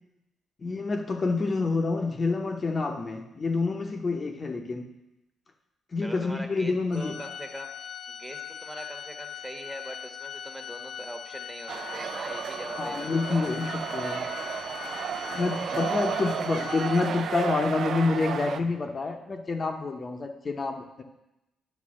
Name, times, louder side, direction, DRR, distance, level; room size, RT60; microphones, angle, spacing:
voice 1, 0.6-4.9 5.9-7.2 12.8-14.3 15.3-21.0, left 3 dB, 35° left, 4 dB, 0.8 m, -28 dB
voice 2, 6.0-7.7 8.1-13.5 15.9-16.5, equal, 10° right, 3 dB, 1.2 m, -42 dB
Organ, 6.9-17.6, left 8 dB, 65° left, 0.3 m, -41 dB
sound 1, 11.7-18.6, right 7 dB, 60° right, 0.4 m, -33 dB
9.4 x 3.4 x 6.2 m, 0.91 s
cardioid pair, 90°, 0 cm